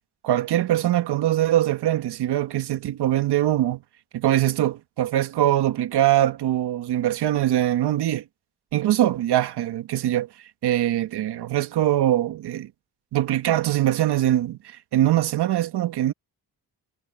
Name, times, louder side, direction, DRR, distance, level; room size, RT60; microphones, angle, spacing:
voice 1, 0.2-3.8 4.1-8.2 8.7-10.3 10.6-12.7 13.1-16.1, right 13 dB, 85° right, 1.6 m, -22 dB
cardioid pair, 65°, 39 cm